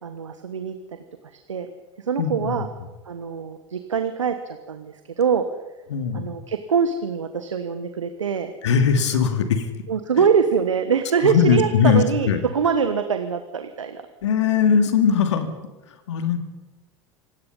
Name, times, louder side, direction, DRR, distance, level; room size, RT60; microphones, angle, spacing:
voice 1, 0.0-1.7 2.0-2.7 3.0-5.5 6.1-8.5 9.9-14.0, right 6 dB, 80° right, 9 dB, 1.3 m, -24 dB
voice 2, 2.2-2.7 5.9-6.3 8.6-9.7 10.2-10.3 11.2-12.4 14.2-15.5 16.1-16.4, left 7 dB, 70° left, 8 dB, 2.4 m, -20 dB
26.0 x 18.0 x 5.5 m, 1.2 s
figure-of-eight pair, 80°, 16 cm